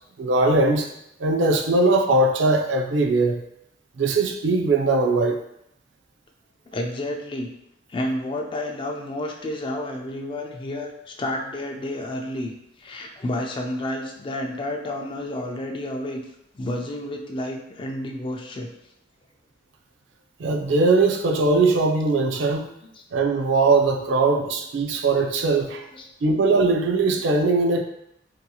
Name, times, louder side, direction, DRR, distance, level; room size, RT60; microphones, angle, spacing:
voice 1, 0.2-0.9 1.2-3.4 4.0-5.4 20.4-22.7 23.1-25.9 26.2-27.8, right 3 dB, 75° right, 3 dB, 0.4 m, -20 dB
voice 2, 6.7-7.5 7.9-12.5 12.8-16.2 16.5-18.7 25.9-26.4, left 1 dB, 25° left, 2 dB, 0.3 m, -30 dB
2.8 x 2.7 x 2.3 m, 0.78 s
head